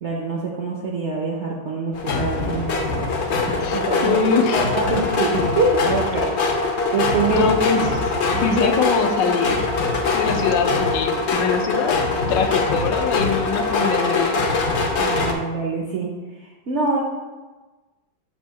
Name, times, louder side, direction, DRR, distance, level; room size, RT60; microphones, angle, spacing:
voice 1, 0.0-2.8 3.6-4.2 4.5-6.3 6.9-7.5 8.3-8.7 15.0-16.1 16.7-17.0, right 3 dB, 65° right, -2 dB, 0.7 m, -24 dB
sound 1, 1.9-15.3, left 3 dB, 60° left, 0.7 m, -22 dB
voice 2, 3.4-4.7 7.3-8.0 8.4-9.7 10.1-12.0 12.3-14.5, left 5 dB, 85° left, 5 dB, 1.3 m, -23 dB
7.2 x 2.7 x 5.6 m, 1.2 s
omnidirectional pair, 1.9 m